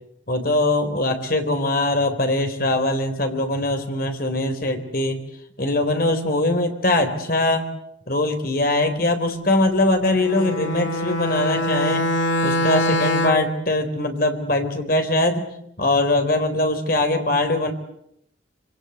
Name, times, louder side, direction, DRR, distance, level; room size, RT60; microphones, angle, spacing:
voice 1, 0.3-5.2 5.6-7.7 8.1-12.1 12.4-15.5 15.8-17.7, left 2 dB, 50° left, 7 dB, 3.8 m, -22 dB
Bowed string instrument, 10.2-13.6, left 1 dB, 85° left, 1.8 m, -23 dB
26.5 x 25.5 x 8.3 m, 0.76 s
head